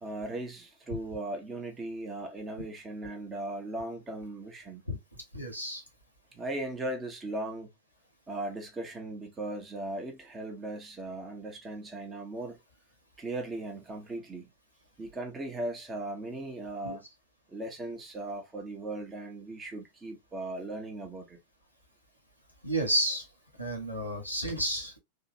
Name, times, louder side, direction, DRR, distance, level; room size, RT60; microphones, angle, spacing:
voice 1, 0.0-4.8 6.3-7.7 8.3-12.6 13.2-14.5 15.0-17.0 17.5-21.4, right 2 dB, 15° right, 1.1 m, -38 dB
voice 2, 5.3-5.8 16.8-17.0 22.6-23.3 23.6-25.0, right 1 dB, 90° right, 1.4 m, -31 dB
3.7 x 2.5 x 2.6 m
figure-of-eight pair, 90°, 0 cm